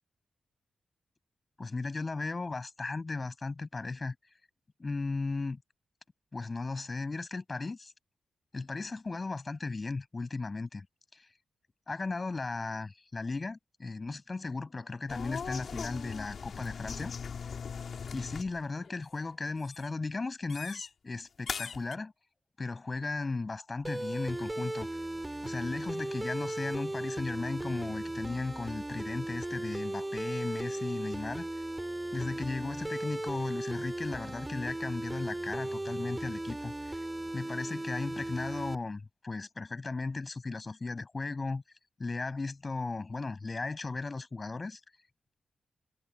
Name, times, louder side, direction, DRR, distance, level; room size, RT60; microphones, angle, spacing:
voice 1, 1.6-4.2 4.8-5.6 6.3-7.9 8.5-10.9 11.1-11.3 11.9-17.1 18.1-22.1 22.6-24.9 25.4-31.5 32.1-37.0 37.3-41.6 42.0-44.8, left 3 dB, 40° left, 7.3 m, -36 dB
sound 1, 15.1-18.6 18.8-19.3 19.6-19.9 20.5-20.9 21.5-21.9, left 6 dB, 65° left, 3.0 m, -40 dB
sound 2, 23.8-38.8, right 1 dB, 20° right, 8.0 m, -37 dB
supercardioid pair, 40°, 0 cm